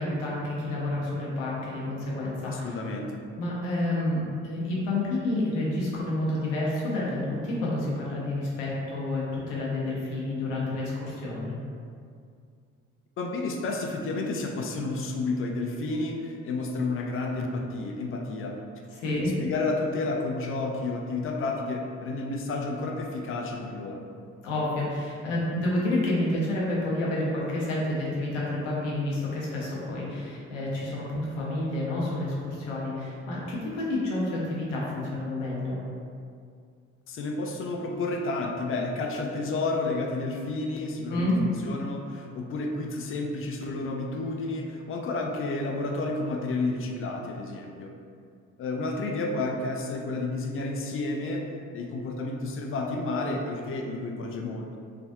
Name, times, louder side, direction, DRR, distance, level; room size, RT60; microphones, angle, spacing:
voice 1, 0.0-2.8 3.4-11.5 18.9-19.3 24.4-35.8 41.1-41.4, left 1 dB, 75° left, -5 dB, 0.8 m, -29 dB
voice 2, 2.5-3.2 13.2-18.6 19.1-24.1 37.1-47.9 48.6-54.8, left 2 dB, 35° left, 1 dB, 0.4 m, -31 dB
3.4 x 2.5 x 2.2 m, 2.2 s
figure-of-eight pair, 45°, 37 cm